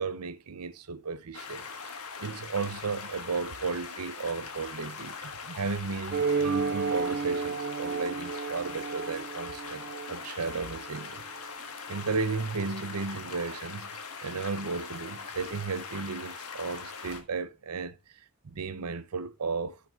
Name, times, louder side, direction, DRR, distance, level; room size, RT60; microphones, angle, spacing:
voice 1, 0.0-1.9 2.2-11.2 11.9-13.9 14.2-19.8, right 4 dB, 90° right, 0.7 m, -34 dB
sound 1, 1.3-17.2, left 5 dB, 85° left, 1.5 m, -41 dB
sound 2, 6.1-11.1, right 5 dB, 45° right, 0.4 m, -32 dB
14.5 x 5.9 x 2.4 m
head